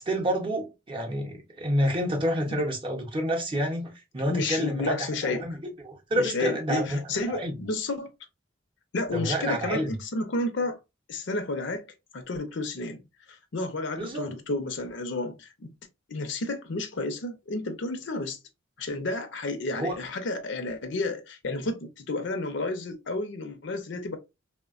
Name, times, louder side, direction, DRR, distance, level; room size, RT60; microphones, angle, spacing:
voice 1, 0.0-5.6 5.8-7.0 7.3-7.6 9.1-10.0 14.0-14.3 19.7-20.0, equal, 25° right, 0.6 m, -29 dB
voice 2, 4.3-5.5 6.1-8.1 8.9-10.8 11.1-11.9 12.1-13.0 13.3-15.7 16.1-18.4 18.8-24.2, left 2 dB, 65° left, 0.6 m, -31 dB
3.2 x 2.1 x 2.3 m
head